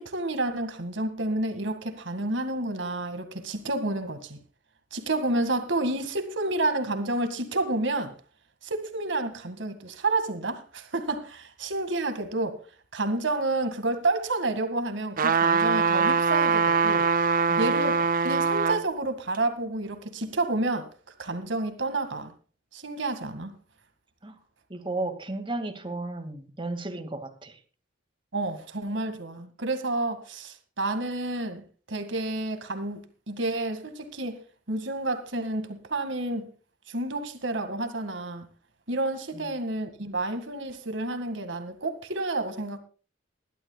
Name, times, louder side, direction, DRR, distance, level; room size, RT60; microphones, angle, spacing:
voice 1, 0.0-4.4 4.9-8.1 8.6-12.6 12.9-17.1 17.6-20.9 21.2-22.3 22.7-23.5 28.3-34.4 34.7-36.5 36.9-38.5 38.9-42.8, right 2 dB, 70° right, 2.0 m, -30 dB
sound 1, 15.2-18.8 19.3-19.4, right 5 dB, 45° right, 0.6 m, -23 dB
voice 2, 24.7-27.6 39.3-39.5, right 2 dB, 25° right, 2.1 m, -34 dB
21.0 x 13.0 x 2.3 m
head